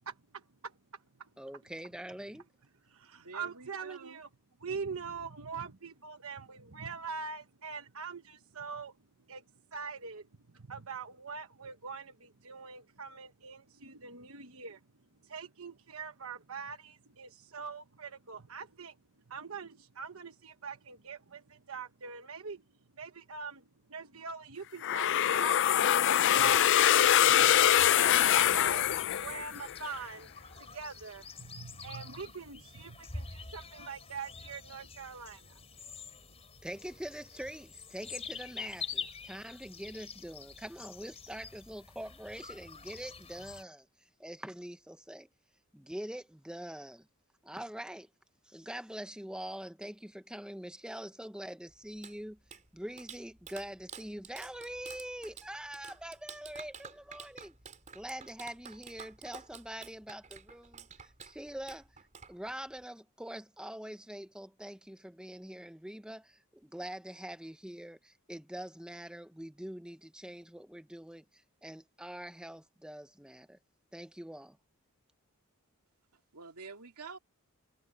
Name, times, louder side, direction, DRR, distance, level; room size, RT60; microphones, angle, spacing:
voice 1, 0.1-0.7 1.2-1.3 2.9-4.3 4.6-9.0 9.3-9.4 9.7-10.3 10.5-14.8 15.2-19.0 19.3-22.6 23.0-23.6 23.9-25.9 26.2-26.8 27.0-27.7 28.0-30.3 30.6-35.6, right 5 dB, 65° right, 1.2 m, -43 dB
voice 2, 1.4-2.5 36.6-43.9 44.2-45.3 45.7-47.1 47.4-48.1 48.4-52.4 52.7-57.5 57.9-61.9 62.3-73.6 73.9-74.6, right 1 dB, 5° right, 0.9 m, -44 dB
voice 3, 3.1-4.2 76.1-77.2, right 4 dB, 90° right, 2.3 m, -48 dB
sound 1, 24.8-29.7, left 11 dB, 55° left, 0.4 m, -24 dB
sound 2, 26.3-43.6, left 5 dB, 30° left, 3.9 m, -47 dB
Clapping, 51.7-62.8, right 6 dB, 35° right, 4.5 m, -51 dB
head